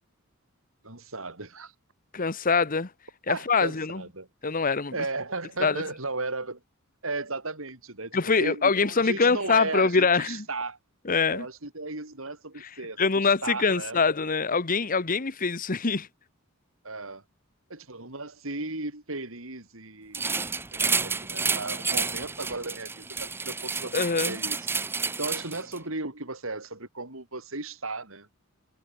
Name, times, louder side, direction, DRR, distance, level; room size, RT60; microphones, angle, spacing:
voice 1, 0.8-1.7 3.3-4.3 4.9-6.6 7.0-10.8 11.3-14.0 16.8-17.2 17.7-20.4 20.7-24.6 25.2-28.3, right 3 dB, 70° right, 4.9 m, -35 dB
voice 2, 2.1-2.9 3.3-4.0 4.4-4.9 5.6-5.8 8.1-10.4 11.1-11.5 13.0-16.1 23.9-24.4, left 4 dB, 40° left, 1.1 m, -24 dB
sound 1, 20.1-25.8, right 4 dB, 10° right, 0.4 m, -30 dB
head